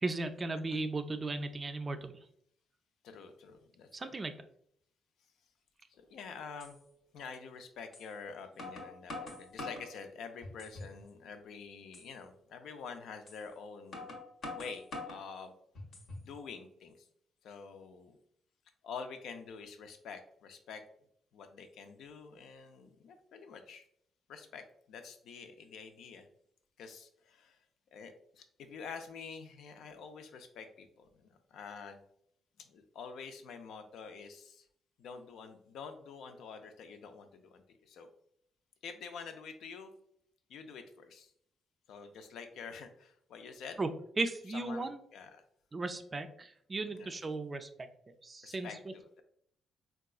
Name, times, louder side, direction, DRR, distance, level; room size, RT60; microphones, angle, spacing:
voice 1, 0.0-2.1 3.9-4.3 43.8-43.9 44.2-45.0 45.7-47.9 48.2-48.7, right 3 dB, 30° right, 8 dB, 0.3 m, -36 dB
voice 2, 3.0-4.1 6.0-6.8 7.1-14.1 14.5-15.5 16.2-17.1 17.4-18.2 18.8-20.8 21.3-23.9 24.3-26.3 26.8-27.6 27.9-32.0 32.6-34.7 35.0-38.1 38.8-39.9 40.5-41.3 41.9-43.8 44.5-45.4 46.9-47.1 48.4-49.2, left 5 dB, 75° left, 7 dB, 0.4 m, -47 dB
sound 1, 6.0-6.1 6.6-6.7 7.9-8.1 8.6-9.9 10.4-11.0 11.3-11.4 11.9-12.1 13.3-13.4 13.9-15.2 15.7-16.3, left 2 dB, 60° left, 0.9 m, -44 dB
3.7 x 2.3 x 2.3 m, 0.69 s
cardioid pair, 90°, 0 cm